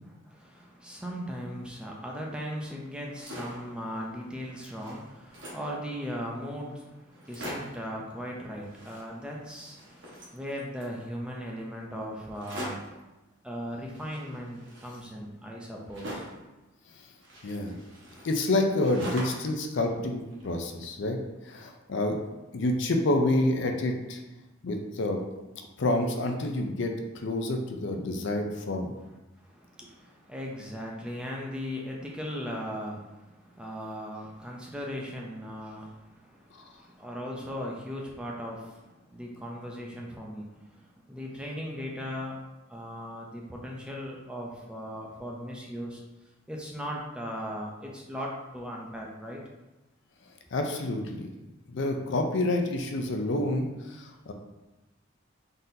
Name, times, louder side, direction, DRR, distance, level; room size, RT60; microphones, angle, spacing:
voice 1, 0.3-12.9 13.4-16.3 29.4-42.4 42.7-46.0 46.5-49.4, equal, 5° right, -2 dB, 0.5 m, -38 dB
sound 1, 3.0-3.7 4.2-4.3 4.5-5.7 6.4-6.5 6.7-6.8 7.1-7.9 8.6-9.4 9.6-11.0 12.3-13.0 13.9-16.5 17.2-19.6 19.9-20.8, equal, 60° right, 1.1 m, -42 dB
voice 2, 17.4-17.8 18.2-21.2 21.4-22.2 22.5-24.2 24.6-25.2 25.8-26.9 27.2-28.9 36.6-36.7 50.5-51.3 51.7-54.3, left 2 dB, 60° left, 3 dB, 0.5 m, -28 dB
4.0 x 3.8 x 2.7 m, 1.0 s
head